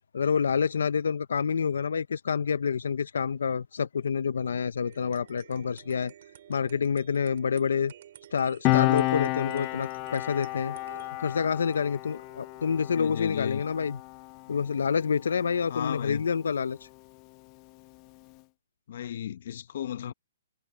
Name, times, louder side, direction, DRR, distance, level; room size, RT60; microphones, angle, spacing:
voice 1, 0.1-6.1 6.5-7.9 8.3-10.8 11.2-14.0 14.5-16.8, left 6 dB, 85° left, 0.6 m, -28 dB
sound 1, 4.8-13.1, right 11 dB, 50° right, 3.3 m, -52 dB
Piano, 8.6-15.7 16.0-16.2, left 22 dB, 25° left, 0.7 m, -31 dB
voice 2, 12.9-13.6 15.7-16.2 18.9-20.1, left 10 dB, 55° left, 1.0 m, -34 dB
hypercardioid pair, 165°, 0 cm